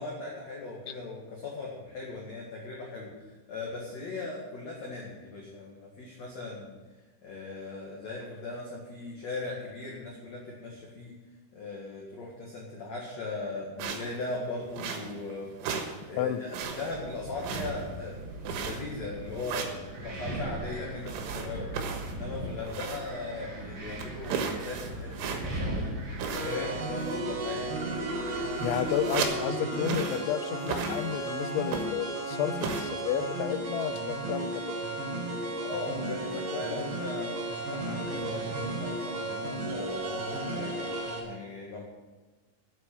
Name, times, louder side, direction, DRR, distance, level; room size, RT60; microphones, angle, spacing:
voice 1, 0.0-6.8 7.2-11.2 11.5-18.2 18.4-25.9 26.3-28.0 35.6-41.8, left 3 dB, 55° left, -3 dB, 2.1 m, -39 dB
sound 1, 13.8-14.2 14.7-15.3 15.6-16.0 16.3-17.0 17.4-18.0 18.4-19.0 19.4-19.8 21.1-23.2 23.5-23.6 24.0-25.7 26.2-26.8 27.0-27.3 28.0-28.1 28.3-29.5 29.8-30.3 30.6-31.3 31.7-32.1 32.6-32.8, right 6 dB, 85° right, 4.0 m, -35 dB
Wind, 16.6-29.2, right 1 dB, 30° right, 3.0 m, -39 dB
sound 2, 26.4-41.2, right 2 dB, 60° right, 5.7 m, -34 dB
voice 2, 28.6-34.7, left 10 dB, 85° left, 11 dB, 3.0 m, -31 dB
9.3 x 8.7 x 8.4 m, 1.2 s
omnidirectional pair, 5.5 m